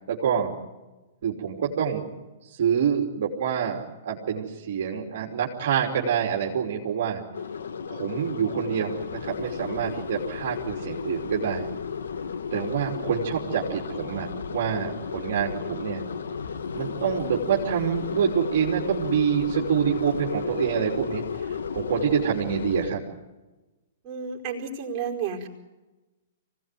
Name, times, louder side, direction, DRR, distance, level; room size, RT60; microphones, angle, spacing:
voice 1, 0.1-0.5 1.2-2.1 2.4-7.2 7.9-11.7 12.5-16.0 16.7-23.0, right 8 dB, 60° right, -1 dB, 3.3 m, -26 dB
sound 1, 7.3-22.9, left 6 dB, 80° left, 1.7 m, -33 dB
voice 2, 24.0-25.5, right 6 dB, 35° right, -2 dB, 4.7 m, -31 dB
25.0 x 17.5 x 9.3 m, 1.1 s
hypercardioid pair, 120°, 0 cm